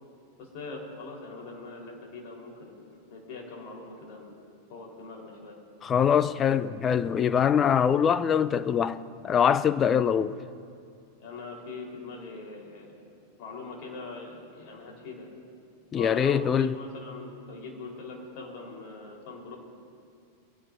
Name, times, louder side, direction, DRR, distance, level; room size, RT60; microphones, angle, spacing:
voice 1, 0.4-4.4 4.7-5.6 11.2-13.0 13.4-15.3 16.0-19.6, left 3 dB, 45° left, 4.1 m, -42 dB
voice 2, 5.8-9.0 9.2-10.3 15.9-16.7, left 8 dB, 25° left, 0.5 m, -23 dB
24.0 x 16.5 x 2.7 m
figure-of-eight pair, 90°, 0 cm